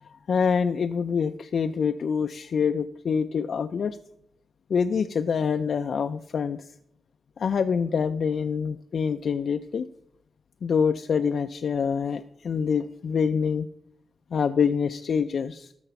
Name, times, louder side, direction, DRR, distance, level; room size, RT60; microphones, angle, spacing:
voice 1, 0.0-4.0 4.7-6.7 7.4-9.9 10.6-13.7 14.3-15.7, left 6 dB, 65° left, 9 dB, 0.3 m, -26 dB
13.5 x 4.9 x 5.7 m, 0.76 s
wide cardioid pair, 140°, 0 cm